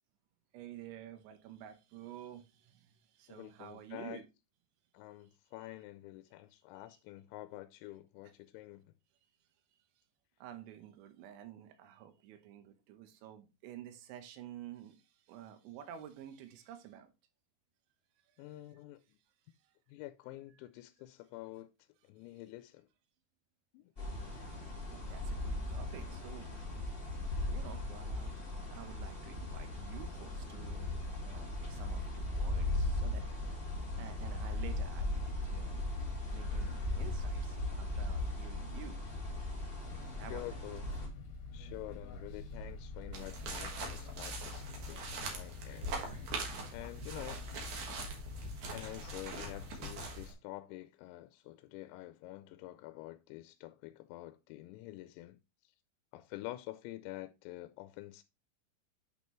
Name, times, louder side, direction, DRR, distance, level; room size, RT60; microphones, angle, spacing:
voice 1, 0.5-4.2 10.4-17.1 18.3-18.5 24.6-26.5 27.5-28.4 28.7-33.2 34.0-35.8 36.3-39.0 40.2-40.6 48.9-49.1, right 10 dB, 85° right, 3.3 m, -51 dB
voice 2, 3.3-4.2 4.9-8.9 18.4-19.2 19.9-21.7 22.1-22.9 23.7-23.9 26.1-26.2 40.3-40.9 41.5-46.3 46.7-47.4 48.7-55.4 56.1-58.2, left 17 dB, 85° left, 2.8 m, -48 dB
sound 1, 24.0-41.1, left 2 dB, 40° left, 0.7 m, -38 dB
sound 2, 39.8-50.1, left 3 dB, 65° left, 2.9 m, -47 dB
sound 3, 43.1-50.3, right 3 dB, 55° right, 2.5 m, -43 dB
8.8 x 5.4 x 3.1 m
omnidirectional pair, 5.3 m